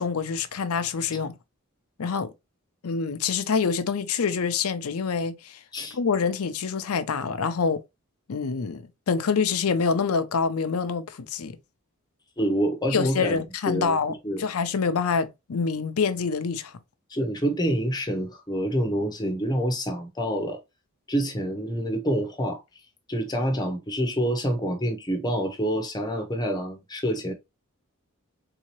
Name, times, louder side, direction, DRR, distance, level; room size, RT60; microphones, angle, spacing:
voice 1, 0.0-1.3 2.0-2.3 2.8-5.6 5.9-7.8 8.3-11.6 12.9-14.1 14.4-16.7, left 5 dB, 80° left, 0.5 m, -26 dB
voice 2, 12.4-13.4 13.7-14.0 14.2-14.4 17.1-20.6 21.1-22.6 23.1-27.3, equal, 20° left, 0.7 m, -27 dB
3.7 x 2.8 x 3.0 m
head